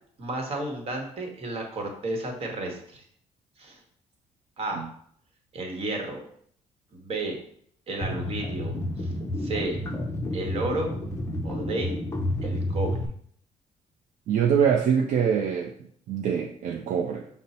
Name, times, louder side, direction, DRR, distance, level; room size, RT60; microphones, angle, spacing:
voice 1, 0.2-3.0 3.6-3.8 4.6-4.8 5.5-6.2 6.9-7.4 7.9-9.1 9.4-9.8 10.3-10.9 11.4-11.9 12.4-13.0, right 2 dB, 45° right, 2 dB, 1.1 m, -32 dB
sound 1, 8.0-13.1, left 1 dB, 20° left, 0.5 m, -30 dB
voice 2, 14.3-15.7 16.1-17.3, right 7 dB, 70° right, 1 dB, 0.4 m, -24 dB
5.2 x 2.0 x 4.1 m, 0.64 s
cardioid pair, 105°, 13 cm